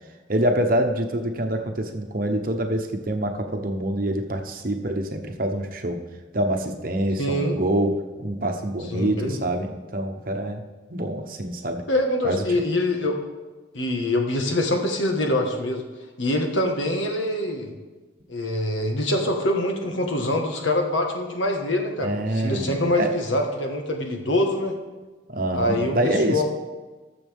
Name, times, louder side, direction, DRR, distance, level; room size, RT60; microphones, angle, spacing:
voice 1, 0.3-6.0 6.3-10.6 10.9-11.8 12.2-12.6 22.0-23.1 25.3-26.4, right 1 dB, 45° right, 4 dB, 1.0 m, -26 dB
voice 2, 7.2-7.5 8.9-9.4 11.9-13.2 13.7-15.8 16.2-17.7 18.3-24.8 25.5-26.4, left 1 dB, 85° left, 3 dB, 1.6 m, -24 dB
19.5 x 6.9 x 3.6 m, 1.3 s
head